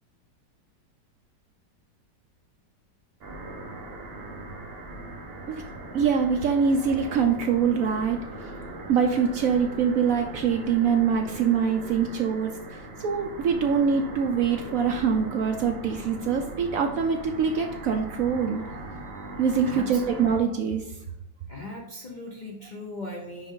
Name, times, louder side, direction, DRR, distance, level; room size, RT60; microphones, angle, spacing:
sound 1, 3.2-20.4, right 2 dB, 45° right, 0.8 m, -39 dB
voice 1, 5.9-8.2 8.9-18.6 19.4-20.8, right 6 dB, 75° right, 4 dB, 0.7 m, -24 dB
voice 2, 19.6-20.3 21.5-23.5, left 1 dB, 45° left, -2 dB, 0.6 m, -38 dB
6.0 x 5.1 x 3.7 m, 0.82 s
omnidirectional pair, 2.0 m